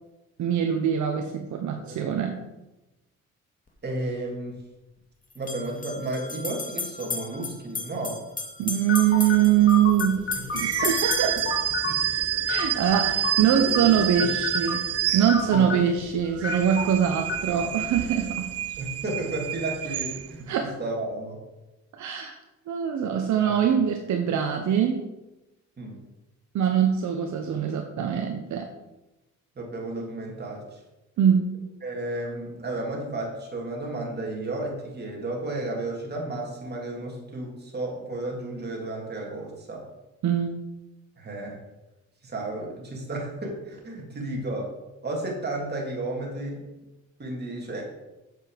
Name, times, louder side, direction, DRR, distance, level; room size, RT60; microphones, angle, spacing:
voice 1, 0.4-2.4 8.6-10.2 10.5-11.5 12.5-14.8 15.1-18.5 20.5-20.7 21.9-22.4 22.7-25.0 26.5-28.7 31.2-31.5 40.2-40.6, right 9 dB, 70° right, 4 dB, 1.0 m, -23 dB
sound 1, 3.7-3.8 5.3-11.6, left 3 dB, 25° left, 2.0 m, -34 dB
voice 2, 3.8-4.5 5.3-8.2 11.8-12.0 13.6-13.9 14.2-14.3 15.5-15.7 18.8-21.4 23.4-23.6 25.8-26.0 29.6-30.8 31.8-39.8 41.2-41.6 42.2-44.7 45.0-46.7 47.2-47.9, right 2 dB, 35° right, -1 dB, 3.1 m, -33 dB
sound 2, 8.9-18.4, left 4 dB, 40° left, 1.4 m, -34 dB
sound 3, 10.5-15.8 16.3-20.5, right 12 dB, 55° right, 0.5 m, -29 dB
7.9 x 7.3 x 5.2 m, 0.99 s
cardioid pair, 90°, 30 cm